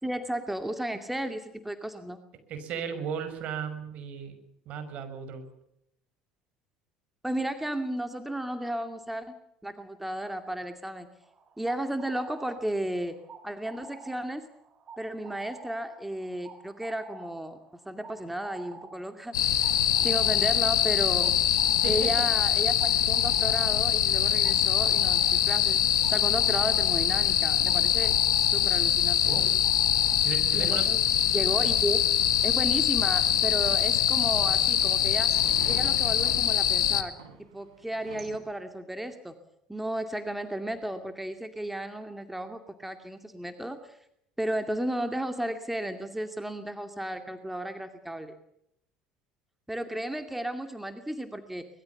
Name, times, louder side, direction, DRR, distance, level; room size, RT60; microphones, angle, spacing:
voice 1, 0.0-2.2 7.2-9.3 9.6-11.1 11.6-14.5 15.0-17.6 17.9-19.7 20.0-21.4 21.9-25.8 26.1-29.3 30.5-31.0 31.3-32.0 32.4-35.3 35.6-37.1 37.4-39.4 39.7-44.0 44.4-48.4 49.7-51.7, right 1 dB, 5° right, 7 dB, 2.4 m, -34 dB
voice 2, 2.5-4.4 4.7-5.4 21.8-22.0 29.2-29.6 30.2-30.8, right 7 dB, 55° right, 9 dB, 5.8 m, -35 dB
sound 1, 11.2-30.7, right 4 dB, 35° right, 4.1 m, -50 dB
sound 2, 19.3-37.0, left 10 dB, 80° left, 1.7 m, -24 dB
sound 3, 33.3-38.4, right 6 dB, 80° right, 4.4 m, -47 dB
24.5 x 21.5 x 7.0 m, 0.77 s
hypercardioid pair, 65°, 3 cm